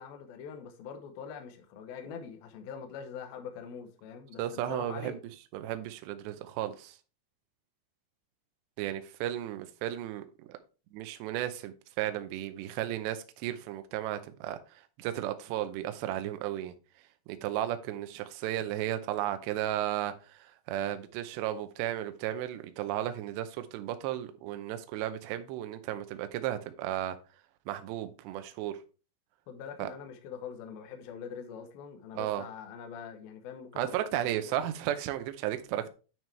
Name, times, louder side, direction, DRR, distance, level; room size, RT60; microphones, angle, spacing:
voice 1, 0.0-5.2 29.5-34.7, left 7 dB, 75° left, 2.3 m, -44 dB
voice 2, 4.4-5.2 5.5-7.0 8.8-10.6 10.9-16.7 17.3-27.2 27.7-28.8 29.8-29.9 32.2-32.5 33.8-35.9, right 12 dB, 80° right, 2.7 m, -34 dB
9.1 x 6.0 x 3.4 m
omnidirectional pair, 5.4 m